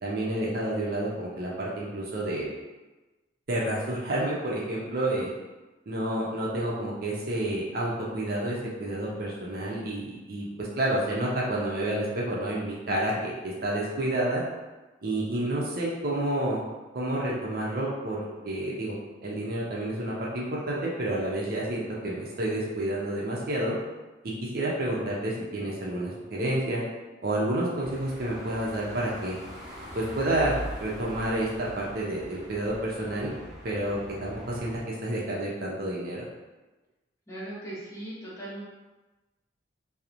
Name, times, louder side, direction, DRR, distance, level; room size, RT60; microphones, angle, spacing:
voice 1, 0.0-2.5 3.5-5.3 5.9-14.4 15.0-16.6 16.9-18.9 19.2-23.7 24.2-26.8 27.2-29.4 29.9-30.5 30.8-33.3 33.6-36.2, right 1 dB, 55° right, -4 dB, 0.5 m, -29 dB
sound 1, 27.8-34.8, equal, 20° right, 0.8 m, -42 dB
voice 2, 37.3-38.6, right 1 dB, 15° left, -8 dB, 0.7 m, -39 dB
2.9 x 2.0 x 2.5 m, 1.1 s
head